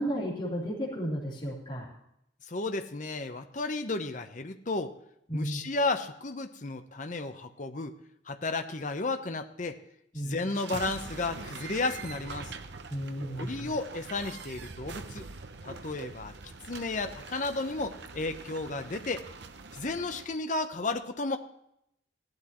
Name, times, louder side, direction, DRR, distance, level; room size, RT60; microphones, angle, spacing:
voice 1, 0.0-1.9 5.3-5.6 10.1-10.4 12.9-13.7, equal, 25° left, -8 dB, 3.6 m, -33 dB
voice 2, 2.4-4.9 5.3-7.9 8.3-9.8 10.1-12.5 13.4-15.2 15.6-16.3 16.7-19.2 19.7-21.4, left 3 dB, 45° left, 8 dB, 0.9 m, -33 dB
sound 1, 10.3-20.3, right 4 dB, 65° right, 0.8 m, -44 dB
16.5 x 12.0 x 3.1 m, 0.76 s
head